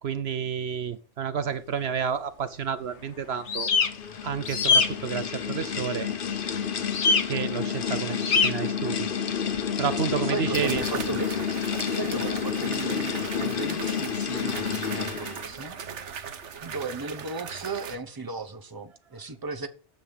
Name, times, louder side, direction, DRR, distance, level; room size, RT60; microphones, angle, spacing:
voice 1, 0.0-3.7 4.2-6.1 7.2-9.1 9.8-10.8, right 7 dB, 65° right, 0.9 m, -30 dB
sound 1, 3.3-15.5, left 7 dB, 50° left, 1.1 m, -30 dB
sound 2, 3.5-3.9 4.4-4.9 6.9-7.2 8.2-8.5, left 5 dB, 80° left, 1.4 m, -21 dB
sound 3, 9.5-9.6 10.5-17.9, right 7 dB, 90° right, 1.3 m, -38 dB
voice 2, 10.3-11.3 11.9-15.8 16.6-19.7, right 4 dB, 20° right, 1.1 m, -35 dB
10.0 x 7.9 x 5.3 m
omnidirectional pair, 1.2 m